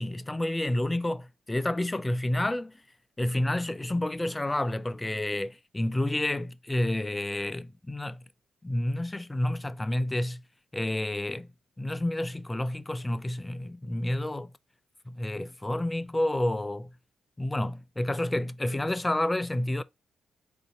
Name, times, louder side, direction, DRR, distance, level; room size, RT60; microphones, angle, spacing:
voice 1, 0.0-2.8 3.2-8.2 8.6-10.4 10.7-11.5 11.8-14.5 15.1-16.9 17.4-19.8, left 1 dB, 15° left, 0.4 m, -29 dB
3.9 x 2.6 x 2.9 m
supercardioid pair, 55°, 0 cm